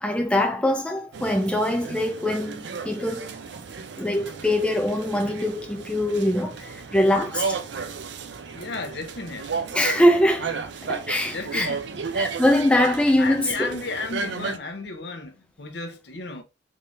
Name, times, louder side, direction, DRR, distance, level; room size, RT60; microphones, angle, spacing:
voice 1, 0.0-3.3 4.0-7.6 9.7-10.6 10.8-11.7 12.1-13.8, left 1 dB, 5° left, 0.3 m, -23 dB
sound 1, 1.1-14.6, right 5 dB, 65° right, 0.5 m, -34 dB
voice 2, 8.5-9.7 11.3-12.0 13.2-16.4, left 3 dB, 60° left, 0.7 m, -34 dB
3.7 x 3.1 x 2.6 m
head